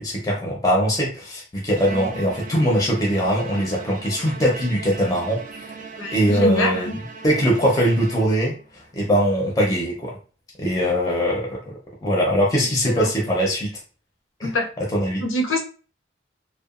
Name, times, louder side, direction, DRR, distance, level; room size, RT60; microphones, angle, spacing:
voice 1, 0.0-5.7 6.1-6.9 7.2-10.1 10.6-11.7 12.0-13.7 14.4-14.5 14.9-15.2, equal, 20° left, -1 dB, 0.5 m, -21 dB
Bowed string instrument, 1.7-8.7, right 5 dB, 40° right, 0.3 m, -38 dB
voice 2, 6.0-7.0 12.8-13.1 14.4-14.7 15.2-15.6, left 2 dB, 80° left, 1 dB, 0.7 m, -24 dB
2.7 x 2.2 x 2.4 m, 0.37 s
head